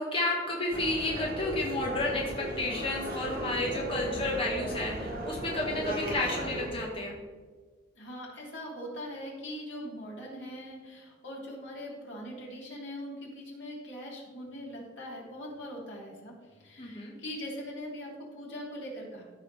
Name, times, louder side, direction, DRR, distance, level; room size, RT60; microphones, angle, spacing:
voice 1, 0.0-7.1 16.8-17.1, left 2 dB, 30° left, -2 dB, 1.3 m, -31 dB
sound 1, 0.7-6.7, right 1 dB, 50° right, 1.7 m, -36 dB
voice 2, 7.9-19.2, equal, 85° left, -4 dB, 3.1 m, -41 dB
14.0 x 6.2 x 3.3 m, 1.4 s
head